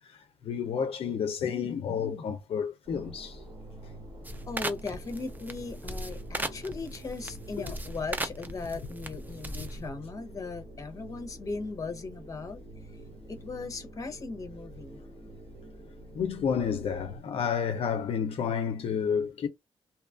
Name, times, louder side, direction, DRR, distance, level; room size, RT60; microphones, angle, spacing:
voice 1, 0.1-3.4 16.1-19.5, left 7 dB, 65° left, 0.4 m, -30 dB
sound 1, 2.8-17.2, right 1 dB, 35° right, 0.9 m, -47 dB
sound 2, 4.2-9.9, right 2 dB, 15° right, 0.4 m, -38 dB
voice 2, 4.5-12.6 13.3-15.0, left 3 dB, 35° left, 0.7 m, -38 dB
2.8 x 2.3 x 2.3 m
cardioid pair, 115°, 10 cm